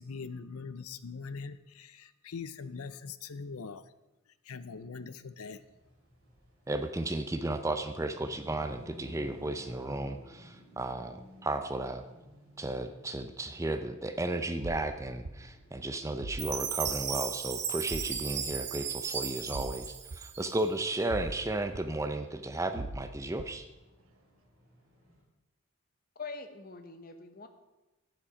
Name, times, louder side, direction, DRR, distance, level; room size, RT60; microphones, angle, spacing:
voice 1, 0.0-3.8 4.4-5.6, left 5 dB, 85° left, 14 dB, 0.6 m, -42 dB
sound 1, 5.5-25.2, equal, 45° right, 4.1 m, -57 dB
voice 2, 6.7-12.0 12.6-23.7, right 2 dB, 15° right, 8 dB, 0.5 m, -34 dB
sound 2, 14.6-14.8 15.2-15.4 16.2-16.5 16.9-17.0 17.9-18.1 18.5-18.6 19.5-19.7 20.1-20.2 21.1-21.4 21.7-21.8 22.7-23.0 23.4-23.5, right 2 dB, 75° right, 0.8 m, -39 dB
Chime, 16.4-20.8, right 8 dB, 30° right, 1.0 m, -36 dB
voice 3, 26.1-27.5, left 4 dB, 40° left, 7 dB, 1.0 m, -43 dB
11.5 x 8.6 x 5.0 m, 1.0 s
head